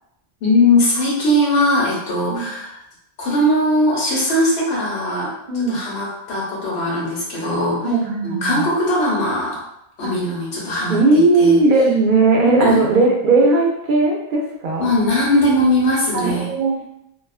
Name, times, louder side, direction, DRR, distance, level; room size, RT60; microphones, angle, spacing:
voice 1, 0.4-2.8 3.2-7.8 8.2-9.6 10.0-11.6 12.4-12.8 14.8-16.5, left 1 dB, 75° left, -4 dB, 1.0 m, -19 dB
voice 2, 5.5-5.8 7.8-8.7 10.0-10.1 10.9-14.9 16.1-16.9, right 3 dB, 60° right, -1 dB, 0.6 m, -17 dB
2.4 x 2.3 x 2.3 m, 0.81 s
omnidirectional pair, 1.1 m